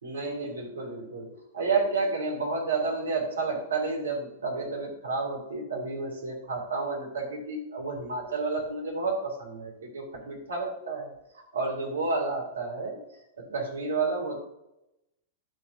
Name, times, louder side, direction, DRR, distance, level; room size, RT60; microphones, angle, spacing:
voice 1, 0.0-13.0 13.4-14.4, right 3 dB, 75° right, 0 dB, 2.5 m, -31 dB
11.5 x 6.9 x 2.6 m, 0.89 s
figure-of-eight pair, 100°, 0 cm